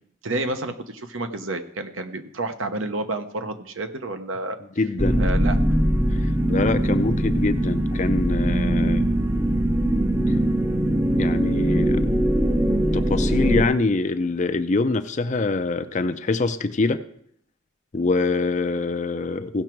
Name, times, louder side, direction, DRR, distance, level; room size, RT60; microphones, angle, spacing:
voice 1, 0.2-4.6 5.2-5.6, right 2 dB, 70° right, 8 dB, 0.9 m, -29 dB
voice 2, 4.8-5.2 6.1-9.1 10.3-10.4 11.2-12.1 12.9-17.0 17.9-19.6, left 3 dB, 35° left, 9 dB, 0.5 m, -24 dB
sound 1, 5.0-13.6, right 1 dB, 10° right, 0.6 m, -21 dB
16.0 x 6.1 x 4.5 m, 0.70 s
head